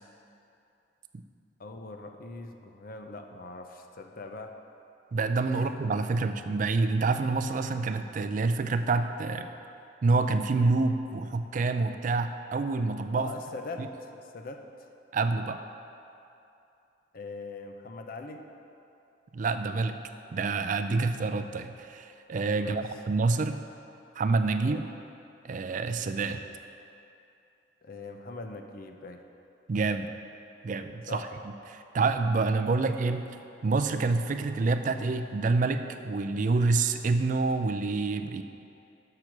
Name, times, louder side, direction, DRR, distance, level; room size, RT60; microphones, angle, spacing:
voice 1, 1.6-4.6 5.5-5.7 13.1-14.9 17.1-18.4 22.6-22.8 24.7-24.8 27.8-29.2 31.1-31.3 32.7-33.2, left 3 dB, 50° left, 5 dB, 0.5 m, -42 dB
voice 2, 5.1-9.5 10.0-13.3 13.8-13.9 15.1-15.6 19.3-19.9 20.3-23.6 24.2-24.9 25.4-26.4 29.7-30.1 30.6-31.3 31.7-33.2 33.6-38.4, right 3 dB, 40° right, 8 dB, 0.3 m, -27 dB
6.6 x 6.1 x 5.9 m, 2.7 s
head